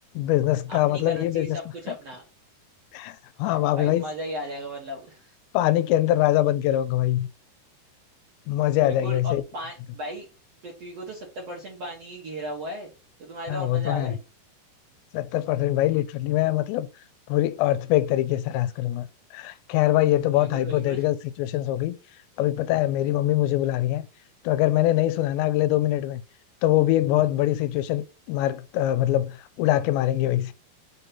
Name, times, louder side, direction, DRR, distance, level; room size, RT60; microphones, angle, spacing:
voice 1, 0.2-1.5 2.9-4.0 5.5-7.3 8.5-9.4 13.5-14.1 15.1-16.9 17.3-19.1 19.3-22.0 22.4-24.0 24.4-26.2 26.6-30.5, left 14 dB, 90° left, 2.9 m, -23 dB
voice 2, 0.7-2.2 3.5-5.3 8.8-10.3 10.6-12.9 13.2-14.2 20.3-21.0, equal, 75° right, 1.4 m, -36 dB
6.3 x 2.8 x 5.2 m
omnidirectional pair, 5.1 m